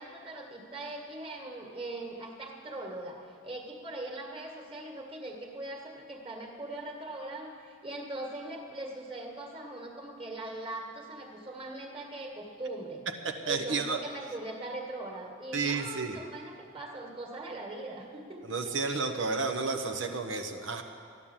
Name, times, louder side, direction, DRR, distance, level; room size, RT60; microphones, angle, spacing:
voice 1, 0.0-13.0 13.4-18.7, right 2 dB, 30° right, 1 dB, 1.8 m, -41 dB
voice 2, 13.2-14.0 15.5-16.2 18.5-20.8, right 4 dB, 75° right, 5 dB, 0.9 m, -31 dB
13.0 x 11.0 x 7.4 m, 2.3 s
head